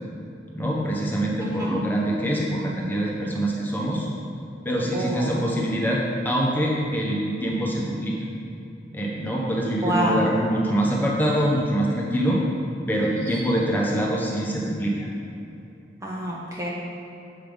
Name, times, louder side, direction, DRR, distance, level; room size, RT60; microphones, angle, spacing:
voice 1, 0.5-4.1 4.6-8.2 8.9-12.4 12.9-14.9, right 1 dB, 10° left, -3 dB, 1.0 m, -24 dB
voice 2, 1.4-1.8 4.9-5.4 9.8-10.2 16.0-16.7, equal, 15° right, -4 dB, 0.8 m, -27 dB
7.5 x 5.5 x 5.3 m, 2.8 s
head